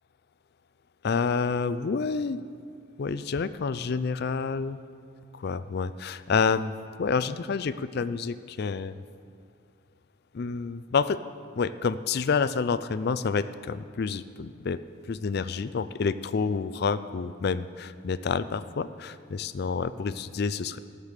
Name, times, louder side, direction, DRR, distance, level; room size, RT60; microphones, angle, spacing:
voice 1, 1.0-2.4 3.0-4.8 5.3-6.7 7.0-9.0 10.3-11.2 11.6-14.8 15.1-20.8, left 5 dB, 50° left, 14 dB, 0.4 m, -28 dB
17.0 x 6.7 x 6.6 m, 2.3 s
head